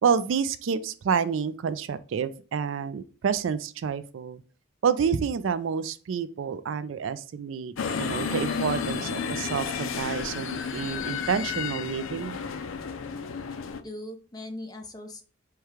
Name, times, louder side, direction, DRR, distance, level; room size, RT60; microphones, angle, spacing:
voice 1, 0.0-4.4 4.8-12.4, right 6 dB, 70° right, 13 dB, 0.3 m, -28 dB
sound 1, 7.8-13.8, left 6 dB, 80° left, 0.5 m, -32 dB
voice 2, 13.5-15.2, left 1 dB, 20° left, 5 dB, 0.6 m, -40 dB
4.5 x 2.3 x 4.8 m, 0.38 s
head